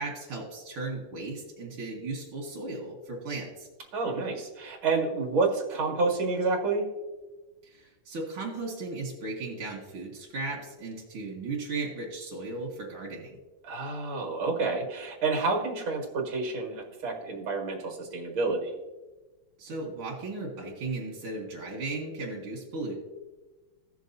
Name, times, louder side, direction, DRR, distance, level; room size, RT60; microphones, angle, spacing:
voice 1, 0.0-3.7 7.6-13.4 19.6-22.9, right 3 dB, 85° right, -3 dB, 2.3 m, -36 dB
voice 2, 3.9-6.8 13.6-18.7, right 3 dB, 70° right, 1 dB, 2.5 m, -29 dB
16.0 x 6.4 x 2.7 m, 1.2 s
omnidirectional pair, 2.3 m